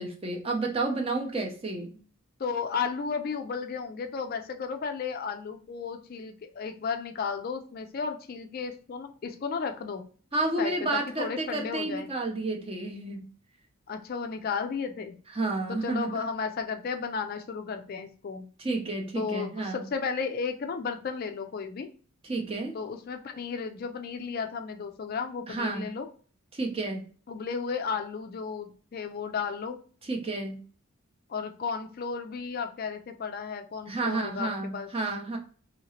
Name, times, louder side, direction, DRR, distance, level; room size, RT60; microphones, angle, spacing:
voice 1, 0.0-2.0 10.3-13.2 15.3-16.2 18.6-19.9 22.2-22.8 25.5-25.9 26.5-27.0 30.0-30.6 33.9-35.4, right 2 dB, 25° right, 2 dB, 0.6 m, -31 dB
voice 2, 2.4-10.0 10.6-12.1 13.9-15.2 15.7-18.4 19.2-21.9 22.7-26.1 27.3-29.8 31.3-34.9, left 5 dB, 45° left, 6 dB, 0.3 m, -34 dB
2.9 x 2.8 x 2.7 m, 0.41 s
head